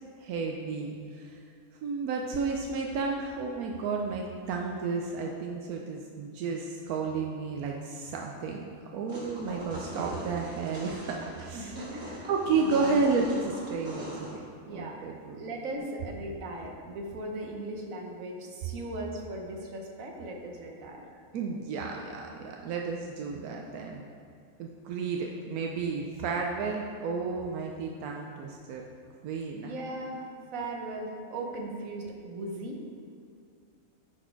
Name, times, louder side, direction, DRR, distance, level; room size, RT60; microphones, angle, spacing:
voice 1, 0.2-1.4 1.8-8.7 8.9-15.4 21.3-24.0 24.6-28.8 29.2-29.7, right 4 dB, 85° right, 0 dB, 1.1 m, -32 dB
sound 1, 9.1-14.3, equal, 50° right, 2.3 m, -41 dB
voice 2, 11.5-12.3 12.6-13.0 14.7-15.0 15.3-21.1 29.6-30.3 30.5-32.9, right 1 dB, 70° right, 1 dB, 1.4 m, -38 dB
10.5 x 4.2 x 4.5 m, 2.3 s
omnidirectional pair, 1.5 m